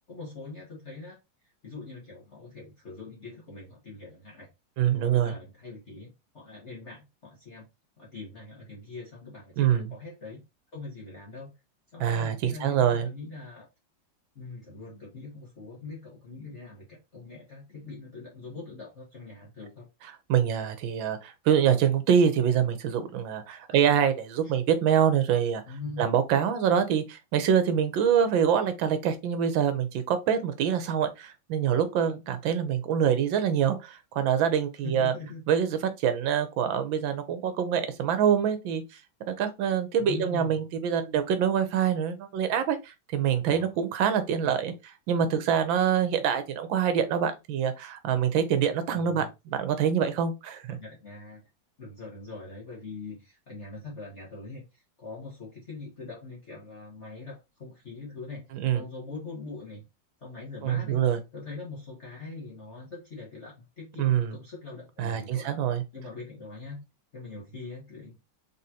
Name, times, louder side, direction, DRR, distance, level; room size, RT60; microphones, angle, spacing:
voice 1, 0.1-1.2 1.6-4.5 4.9-7.7 8.0-10.4 10.7-11.5 11.9-13.7 14.3-19.9 23.7-23.8 24.4-24.5 25.7-26.1 34.8-35.4 40.0-40.6 43.4-43.7 44.4-44.8 48.9-49.3 50.7-51.4 51.8-59.8 60.2-61.0 61.3-65.5 65.9-66.8 67.1-68.2, left 3 dB, 40° left, 1.5 m, -42 dB
voice 2, 4.8-5.3 9.6-9.9 12.0-13.1 20.3-25.6 26.0-35.1 35.5-38.8 39.3-44.7 45.1-50.8 58.5-58.8 60.6-61.2 64.0-64.3 65.0-65.8, right 8 dB, 75° right, 1.5 m, -25 dB
4.0 x 3.7 x 2.8 m
omnidirectional pair, 2.1 m